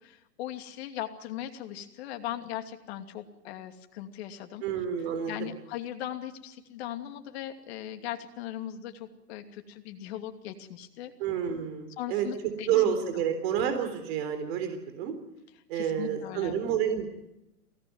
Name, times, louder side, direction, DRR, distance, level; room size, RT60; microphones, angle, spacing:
voice 1, 0.0-4.7 5.3-11.1 12.0-12.7 13.1-13.2 15.7-16.6, left 12 dB, 40° left, 6 dB, 2.7 m, -39 dB
voice 2, 4.6-5.5 11.2-12.3 12.7-15.1 15.7-17.1, right 9 dB, 40° right, 7 dB, 3.9 m, -29 dB
23.0 x 18.0 x 9.6 m, 0.90 s
hypercardioid pair, 140°, 48 cm